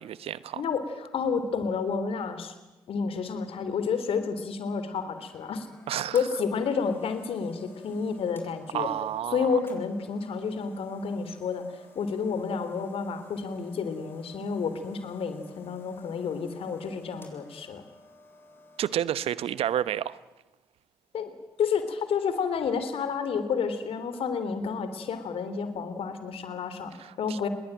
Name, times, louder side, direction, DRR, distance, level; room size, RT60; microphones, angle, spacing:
voice 1, 0.0-0.6 5.9-6.2 8.7-9.5 18.8-20.2 27.0-27.5, right 11 dB, 65° right, 18 dB, 0.9 m, -30 dB
voice 2, 0.6-2.5 2.9-5.7 6.1-8.9 9.3-11.6 12.0-17.8 21.1-21.3 21.6-26.9 27.2-27.5, left 5 dB, 65° left, 10 dB, 3.5 m, -30 dB
sound 1, 4.9-18.9, left 2 dB, 20° left, 7.9 m, -54 dB
28.0 x 21.5 x 9.0 m, 1.1 s
hypercardioid pair, 45°, 11 cm